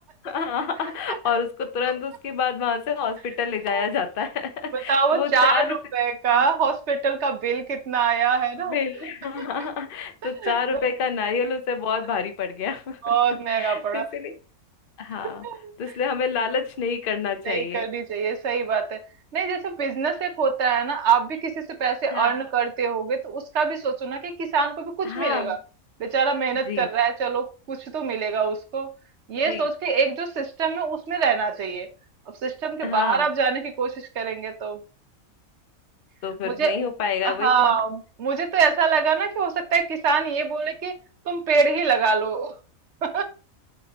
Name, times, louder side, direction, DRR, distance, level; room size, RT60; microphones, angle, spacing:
voice 1, 0.2-5.8 6.3-6.4 8.7-13.1 13.6-14.3 15.0-15.4 15.8-17.8 22.1-22.3 25.0-25.6 26.6-26.9 29.5-29.6 32.8-33.2 36.2-37.7, left 6 dB, 45° left, 1.0 m, -28 dB
voice 2, 4.9-8.8 10.2-10.8 13.0-14.1 15.4-15.9 17.4-19.0 19.3-25.6 26.0-28.9 29.3-31.9 32.4-34.8 36.4-36.9 37.2-40.9 41.2-42.5 43.0-43.2, right 5 dB, 55° right, 1.2 m, -24 dB
6.5 x 5.2 x 2.9 m
omnidirectional pair, 1.5 m